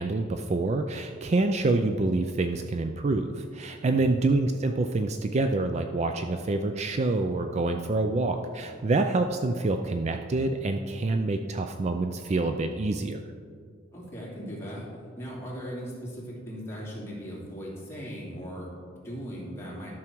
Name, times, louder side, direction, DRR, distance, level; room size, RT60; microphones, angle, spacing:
voice 1, 0.0-13.2, right 2 dB, 35° right, 6 dB, 0.4 m, -27 dB
voice 2, 3.8-4.2 13.9-14.9 15.2-19.9, equal, 15° left, -6 dB, 2.5 m, -38 dB
12.0 x 6.2 x 4.6 m, 2.1 s
head